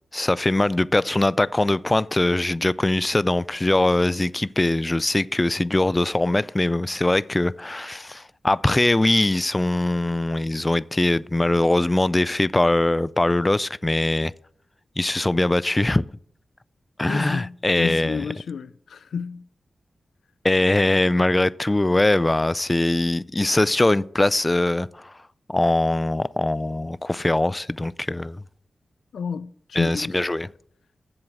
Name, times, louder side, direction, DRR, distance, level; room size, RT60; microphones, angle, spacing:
voice 1, 0.1-14.3 15.0-16.0 17.0-18.2 20.4-25.1 25.5-28.4 29.8-30.5, left 2 dB, 25° left, 0.3 m, -22 dB
voice 2, 17.1-19.5 29.1-30.2, left 6 dB, 90° left, 0.4 m, -31 dB
7.9 x 7.5 x 7.3 m
cardioid pair, 50°, 0 cm